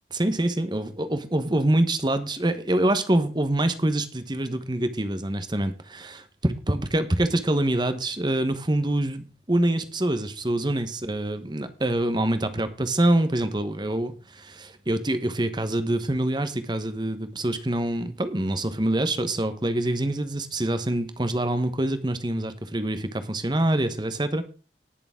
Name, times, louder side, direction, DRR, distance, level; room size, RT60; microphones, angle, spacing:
voice 1, 0.1-24.4, right 1 dB, 25° right, 11 dB, 1.1 m, -25 dB
18.5 x 6.8 x 3.7 m, 0.37 s
head